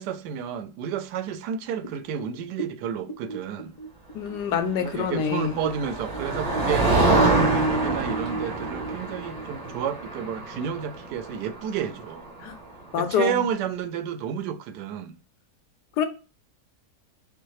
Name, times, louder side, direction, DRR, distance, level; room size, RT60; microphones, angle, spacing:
voice 1, 0.0-3.7 4.8-12.3 13.0-15.2, right 8 dB, 85° right, 1.2 m, -31 dB
sound 1, 1.8-5.4 5.6-9.8, right 2 dB, 65° left, 0.3 m, -32 dB
voice 2, 4.1-5.6 12.4-12.6 12.9-13.4 16.0-16.1, left 8 dB, 85° left, 1.2 m, -26 dB
Motor vehicle (road), 5.0-12.7, right 2 dB, 25° right, 2.1 m, -27 dB
5.3 x 2.5 x 3.1 m
omnidirectional pair, 1.7 m